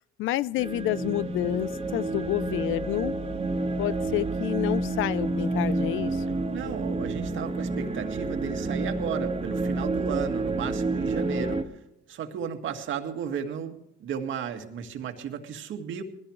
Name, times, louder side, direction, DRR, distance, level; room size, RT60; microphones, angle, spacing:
voice 1, 0.2-3.1 3.8-6.2, left 15 dB, 85° left, 19 dB, 0.6 m, -29 dB
sound 1, 0.6-11.6, right 2 dB, 30° right, 1.7 m, -29 dB
voice 2, 6.5-11.6 12.1-16.0, right 7 dB, 75° right, 6 dB, 2.0 m, -34 dB
20.5 x 16.0 x 3.2 m, 0.83 s
cardioid pair, 90°, 20 cm